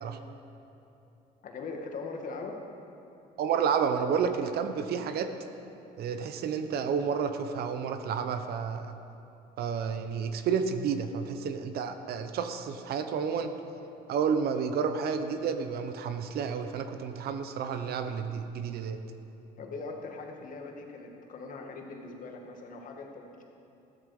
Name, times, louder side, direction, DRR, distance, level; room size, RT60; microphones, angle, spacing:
voice 1, 1.4-2.6 19.6-23.4, left 3 dB, 50° left, 2 dB, 1.9 m, -41 dB
voice 2, 3.4-5.3 6.0-8.9 9.6-13.5 14.1-19.0, right 6 dB, 65° right, 8 dB, 1.0 m, -30 dB
15.0 x 13.0 x 4.9 m, 2.9 s
cardioid pair, 110°, 17 cm